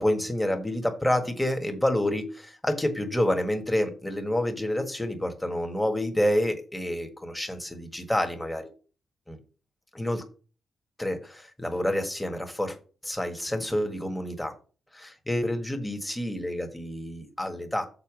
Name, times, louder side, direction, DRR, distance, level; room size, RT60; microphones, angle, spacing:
voice 1, 0.0-8.6 9.3-9.4 9.9-10.2 11.0-12.8 13.0-14.5 14.9-17.9, left 1 dB, 10° left, 5 dB, 1.7 m, -28 dB
6.9 x 4.2 x 6.3 m, 0.37 s
cardioid pair, 85°, 0 cm